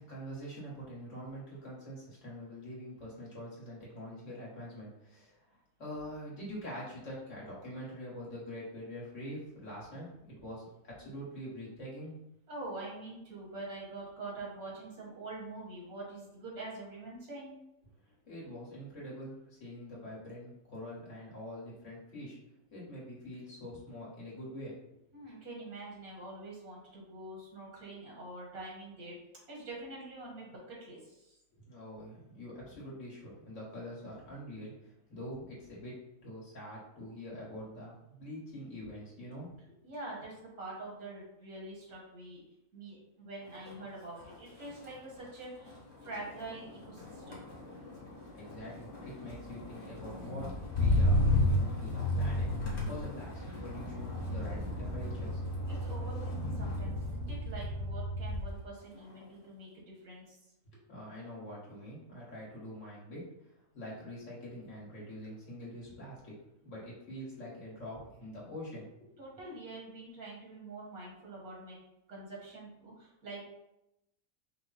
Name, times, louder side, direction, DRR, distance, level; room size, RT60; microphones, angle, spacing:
voice 1, 0.0-5.5 5.8-12.1 18.0-22.4 22.7-25.0 31.6-35.9 36.2-39.8 48.3-55.7 60.7-63.2 63.7-66.3 66.6-69.1, equal, 55° left, -6 dB, 2.1 m, -45 dB
voice 2, 12.5-17.5 25.1-29.2 29.5-31.4 39.8-42.4 42.7-45.7 46.0-47.5 55.7-60.5 69.2-71.8 72.1-73.5, right 2 dB, 75° right, -3 dB, 2.0 m, -45 dB
Motor vehicle (road), 43.5-43.8 44.2-58.6 59.0-59.4, left 1 dB, 40° left, 1.3 m, -33 dB
5.5 x 2.3 x 4.1 m, 0.87 s
omnidirectional pair, 1.5 m